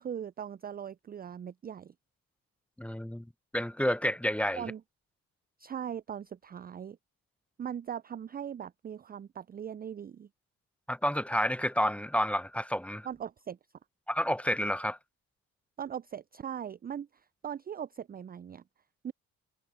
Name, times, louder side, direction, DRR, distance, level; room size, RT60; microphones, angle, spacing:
voice 1, 0.0-1.9 4.6-4.8 5.6-7.0 7.6-10.3 13.0-13.6 15.8-18.6 19.0-19.1, right 8 dB, 20° right, 0.4 m, -40 dB
voice 2, 2.8-3.3 3.5-4.6 10.9-13.1 14.1-15.0, equal, 5° left, 1.1 m, -30 dB
hypercardioid pair, 45°, 43 cm